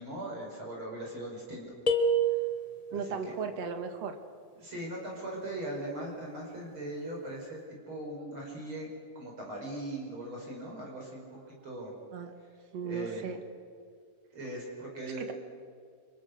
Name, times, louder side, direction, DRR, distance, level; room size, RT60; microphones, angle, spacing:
voice 1, 0.0-1.6 2.3-2.4 2.9-3.3 4.5-8.9 9.2-11.9 12.8-13.3 14.3-15.3, right 1 dB, 45° right, -2 dB, 6.0 m, -40 dB
sound 1, 1.9-3.0, right 3 dB, 55° left, 0.4 m, -27 dB
voice 2, 2.9-4.2 12.1-12.3 12.7-13.4 15.2-15.3, right 6 dB, 60° right, 6 dB, 2.9 m, -36 dB
30.0 x 26.0 x 6.6 m, 2.1 s
omnidirectional pair, 3.3 m